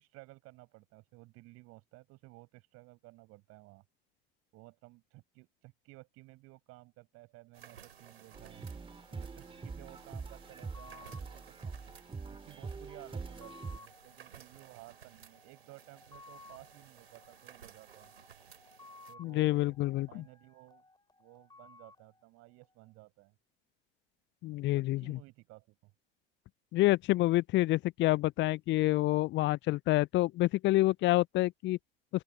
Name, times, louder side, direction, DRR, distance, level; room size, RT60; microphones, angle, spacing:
voice 1, 0.0-3.8 4.5-8.6 9.1-11.8 12.3-18.1 19.1-19.8 20.1-20.8 21.2-23.3 24.8-25.9, right 21 dB, 50° right, 6.6 m, -55 dB
sound 1, 7.5-19.1, right 8 dB, 75° right, 4.2 m, -57 dB
sound 2, 8.3-13.8, right 4 dB, 15° right, 4.3 m, -44 dB
sound 3, 8.5-23.0, left 3 dB, 15° left, 7.3 m, -59 dB
voice 2, 19.2-20.2 24.4-25.2 26.7-31.8, left 17 dB, 40° left, 0.8 m, -28 dB
open air
figure-of-eight pair, 70°, 30 cm